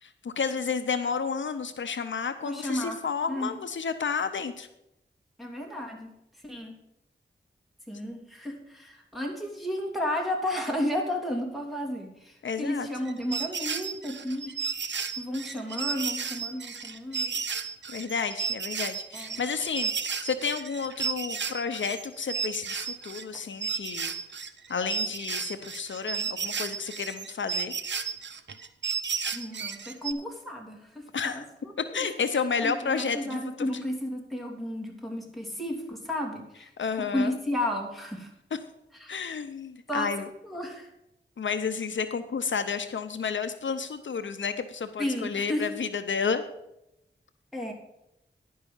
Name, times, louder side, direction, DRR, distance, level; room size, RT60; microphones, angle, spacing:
voice 1, 0.0-4.7 12.4-12.9 17.9-19.9 20.2-24.1 24.7-27.7 31.1-31.4 31.9-33.7 36.8-37.4 38.5-38.6 39.1-40.3 41.4-46.4, left 5 dB, 80° left, 10 dB, 0.7 m, -31 dB
voice 2, 2.4-3.0 3.3-3.6 5.4-6.1 6.4-6.7 7.9-14.6 15.2-17.4 19.1-19.4 29.3-32.1 32.6-36.7 37.1-38.3 39.0-39.2 39.9-40.9 45.0-45.7 47.5-47.7, left 1 dB, ahead, 0 dB, 2.8 m, -33 dB
sound 1, 13.1-23.4 23.6-30.1, right 6 dB, 70° right, 0.7 m, -33 dB
11.0 x 5.5 x 7.1 m, 0.85 s
wide cardioid pair, 55°, 19 cm